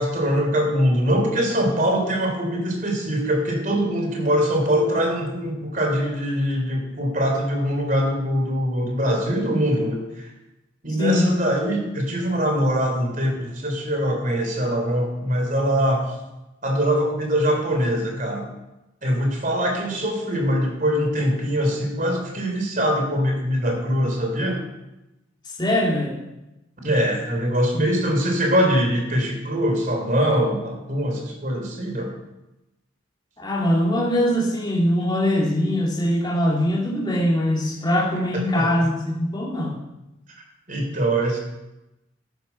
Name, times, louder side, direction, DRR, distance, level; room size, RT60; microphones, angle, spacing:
voice 1, 0.0-10.3 10.8-16.1 16.6-18.5 19.0-24.6 26.8-32.1 38.3-38.9 40.7-41.4, equal, 40° right, 2 dB, 3.4 m, -23 dB
voice 2, 11.0-11.3 25.6-26.2 33.4-39.7, left 1 dB, 20° left, -2 dB, 2.8 m, -22 dB
13.5 x 10.0 x 5.7 m, 0.95 s
head